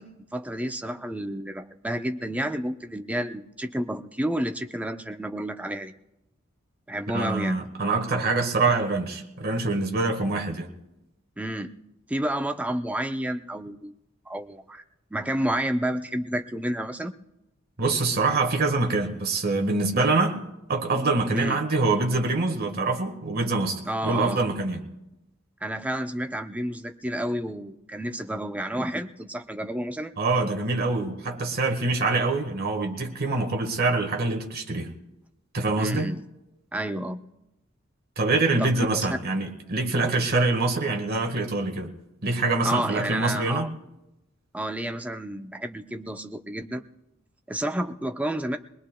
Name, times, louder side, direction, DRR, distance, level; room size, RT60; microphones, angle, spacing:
voice 1, 0.0-5.9 6.9-7.6 11.4-11.7 12.1-13.9 14.3-14.8 15.1-17.1 21.3-21.6 23.9-24.4 25.6-30.1 35.8-36.2 36.7-37.2 38.6-38.9 42.6-43.7 44.5-46.8 47.5-48.6, right 1 dB, 5° right, 6 dB, 0.5 m, -30 dB
voice 2, 7.1-10.7 17.8-20.4 20.7-24.8 30.2-34.9 35.5-36.1 38.2-41.9 42.2-43.7, right 3 dB, 50° right, 4 dB, 1.4 m, -25 dB
21.5 x 20.5 x 2.2 m, 0.94 s
head